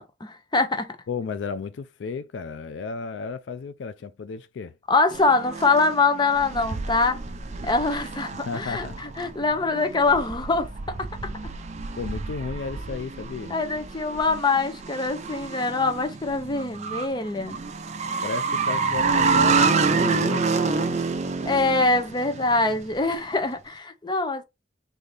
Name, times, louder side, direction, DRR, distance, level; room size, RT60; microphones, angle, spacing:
voice 1, 0.0-1.0 4.9-7.2 7.6-11.1 13.5-17.6 21.4-24.4, left 3 dB, 25° left, 0.7 m, -24 dB
voice 2, 1.1-4.7 8.4-9.0 12.0-13.5 18.2-20.5, left 4 dB, 80° left, 0.4 m, -33 dB
sound 1, 5.1-23.1, right 4 dB, 40° right, 0.5 m, -28 dB
3.9 x 2.7 x 3.3 m
head